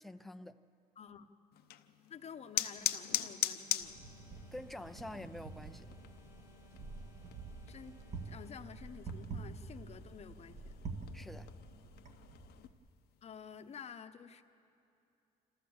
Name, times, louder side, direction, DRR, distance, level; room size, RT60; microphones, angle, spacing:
voice 1, 0.0-0.6 4.5-5.9 11.1-11.5, left 1 dB, ahead, 0.5 m, -47 dB
voice 2, 1.0-1.3 2.1-4.0 7.7-8.0 8.2-10.8 13.2-14.4, left 7 dB, 40° left, 0.9 m, -50 dB
sound 1, 1.5-12.7, left 12 dB, 70° left, 0.8 m, -43 dB
sound 2, 2.8-8.7, right 2 dB, 20° right, 3.8 m, -63 dB
Wind, 3.8-12.7, right 4 dB, 45° right, 1.9 m, -47 dB
26.5 x 14.5 x 7.2 m
cardioid pair, 110°, 17 cm